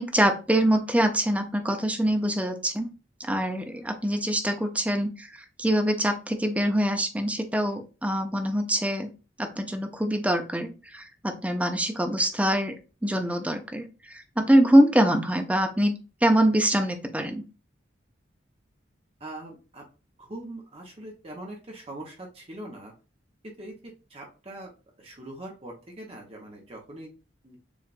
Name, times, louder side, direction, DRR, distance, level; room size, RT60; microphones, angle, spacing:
voice 1, 0.0-2.9 3.2-5.3 5.6-9.1 9.4-12.7 13.0-15.9 16.2-17.4, right 1 dB, 5° right, 5 dB, 0.6 m, -24 dB
voice 2, 19.2-19.9 20.2-22.9 23.4-24.7 25.0-27.1 27.4-27.6, right 1 dB, 30° right, 0 dB, 1.0 m, -42 dB
7.1 x 2.4 x 2.5 m, 0.33 s
head